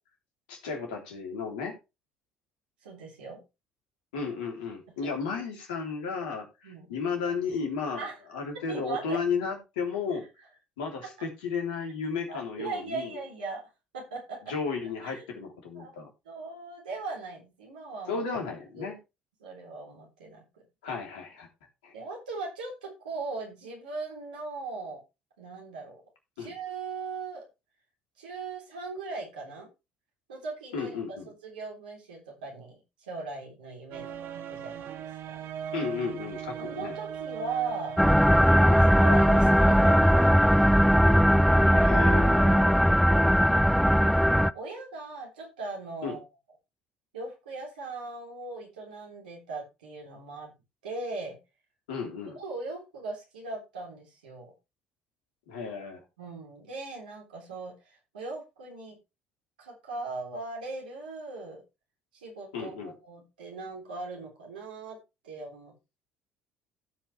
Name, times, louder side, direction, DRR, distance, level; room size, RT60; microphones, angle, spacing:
voice 1, 0.5-1.8 4.1-8.1 8.3-10.3 10.8-13.2 14.5-16.1 18.1-19.0 20.8-21.5 21.8-21.9 26.4-26.5 30.7-31.3 35.7-37.0 38.7-38.9 41.7-42.9 46.0-46.2 51.9-52.4 55.5-56.0 62.5-63.0, left 5 dB, 75° left, 1 dB, 3.4 m, -34 dB
voice 2, 2.8-3.4 6.6-6.9 7.9-8.1 8.7-9.2 10.1-10.2 12.3-13.6 13.9-14.4 15.0-15.2 15.7-16.0 16.3-18.2 18.8-18.9 19.4-20.4 20.9-21.0 21.9-25.0 25.4-26.0 26.4-27.4 28.2-29.7 30.3-34.1 34.5-35.4 36.6-38.0 39.0-41.0 44.5-46.2 47.1-50.5 50.8-51.4 52.3-54.5 56.2-59.0 59.6-61.6 62.1-65.0 65.2-65.7, right 3 dB, 80° right, -1 dB, 3.5 m, -39 dB
sound 1, 33.9-42.3, right 8 dB, 55° right, 1.2 m, -40 dB
sound 2, 38.0-44.5, equal, ahead, 0.5 m, -19 dB
16.5 x 5.6 x 3.3 m, 0.26 s
hypercardioid pair, 55°, 5 cm